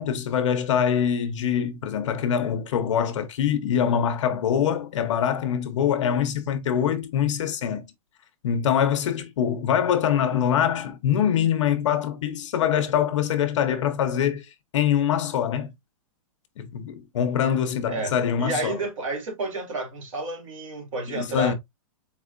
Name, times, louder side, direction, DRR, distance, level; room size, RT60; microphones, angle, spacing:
voice 1, 0.0-7.9 8.4-14.5 14.7-15.7 16.6-18.8 21.1-21.5, left 9 dB, 55° left, 0.8 m, -24 dB
voice 2, 17.9-21.5, right 2 dB, 60° right, 2.4 m, -31 dB
4.3 x 4.1 x 2.5 m
supercardioid pair, 180°, 19 cm